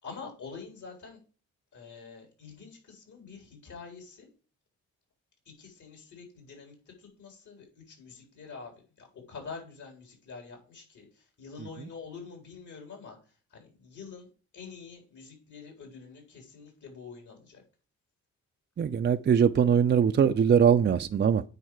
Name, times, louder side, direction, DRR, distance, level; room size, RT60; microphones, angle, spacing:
voice 1, 0.0-1.2 1.7-4.3 5.5-8.7 9.0-13.2 13.5-14.3 14.5-17.6, left 5 dB, 65° left, 4.1 m, -46 dB
voice 2, 18.8-21.4, right 7 dB, 35° right, 0.5 m, -22 dB
9.2 x 4.8 x 4.7 m
cardioid pair, 70°, 32 cm